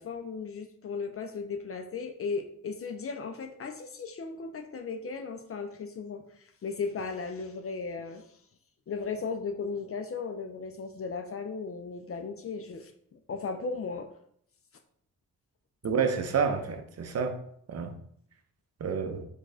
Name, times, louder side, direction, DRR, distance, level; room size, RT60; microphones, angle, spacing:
voice 1, 0.0-8.3 8.9-14.1, left 4 dB, 35° left, 6 dB, 0.5 m, -36 dB
voice 2, 15.8-17.4 17.7-17.9 18.8-19.2, right 6 dB, 40° right, 6 dB, 0.6 m, -29 dB
4.4 x 2.4 x 2.6 m, 0.67 s
hypercardioid pair, 45°, 39 cm